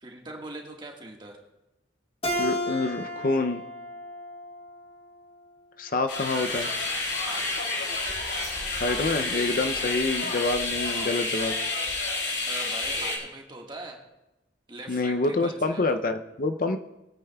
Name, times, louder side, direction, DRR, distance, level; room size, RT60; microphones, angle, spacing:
voice 1, 0.0-1.4 7.2-7.5 12.4-14.0 14.7-16.0, right 2 dB, 25° right, 0 dB, 1.6 m, -41 dB
Keyboard (musical), 2.2-5.5, equal, 30° left, 1.5 m, -33 dB
voice 2, 2.4-3.6 5.8-6.7 8.8-11.6 14.9-16.8, left 3 dB, 45° left, 8 dB, 0.5 m, -27 dB
sound 1, 6.1-13.2, left 2 dB, 70° left, 2.9 m, -29 dB
21.0 x 9.1 x 2.3 m, 0.99 s
head